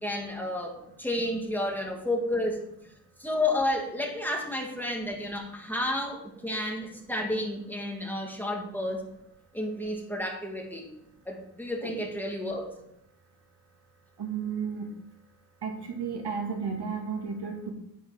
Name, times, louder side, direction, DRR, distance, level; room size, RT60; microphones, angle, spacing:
voice 1, 0.0-0.7 1.0-2.6 3.2-9.1 9.5-10.9 11.3-12.7, left 1 dB, 5° left, 0 dB, 2.0 m, -31 dB
voice 2, 14.2-14.8 15.6-17.7, right 6 dB, 75° right, 1 dB, 2.7 m, -33 dB
10.0 x 9.9 x 4.9 m, 0.79 s
wide cardioid pair, 140°, 40 cm